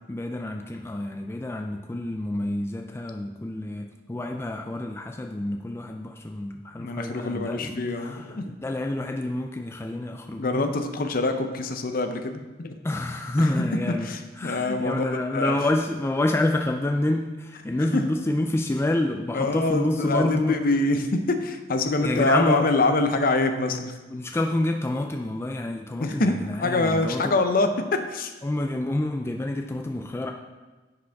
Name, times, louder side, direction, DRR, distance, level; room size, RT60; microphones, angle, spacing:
voice 1, 0.1-10.7 12.8-20.6 22.0-22.7 24.1-27.4 28.4-30.3, left 1 dB, 15° left, 3 dB, 0.3 m, -28 dB
voice 2, 6.8-8.6 10.4-12.8 13.4-13.5 14.0-15.6 17.9-18.0 19.3-24.0 26.0-28.3, left 2 dB, 50° left, 7 dB, 0.6 m, -25 dB
10.5 x 5.1 x 3.5 m, 1.2 s
head